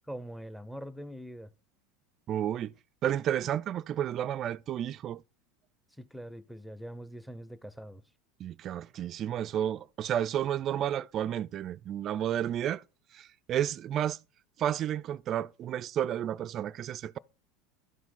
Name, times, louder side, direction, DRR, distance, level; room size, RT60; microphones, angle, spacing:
voice 1, 0.1-1.5 6.0-8.0, equal, ahead, 0.7 m, -43 dB
voice 2, 2.3-2.7 3.0-5.2 8.4-12.8 13.1-14.2 14.6-17.2, right 10 dB, 45° right, 0.3 m, -31 dB
12.5 x 4.8 x 3.8 m
hypercardioid pair, 90°, 0 cm